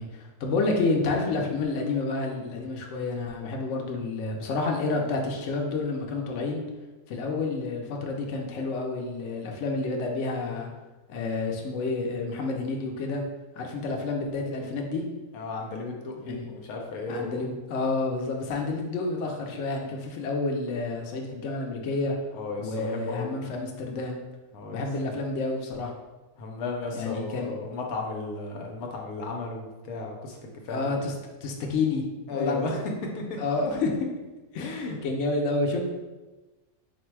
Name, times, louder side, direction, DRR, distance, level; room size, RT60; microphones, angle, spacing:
voice 1, 0.0-6.6 7.1-10.7 11.1-13.2 13.6-15.0 16.2-16.5 17.1-22.2 22.6-24.2 24.7-25.9 26.9-27.5 30.7-31.1 31.4-32.0 32.3-32.8 33.4-34.1 34.5-35.8, left 3 dB, 65° left, 1 dB, 0.9 m, -29 dB
voice 2, 15.3-17.4 22.3-23.3 24.5-24.8 26.4-30.4 30.6-31.0 32.3-32.8 33.2-33.3 33.7-33.8 34.6-35.0, left 3 dB, 80° left, 1 dB, 1.1 m, -34 dB
4.2 x 2.1 x 4.5 m, 1.2 s
omnidirectional pair, 1.6 m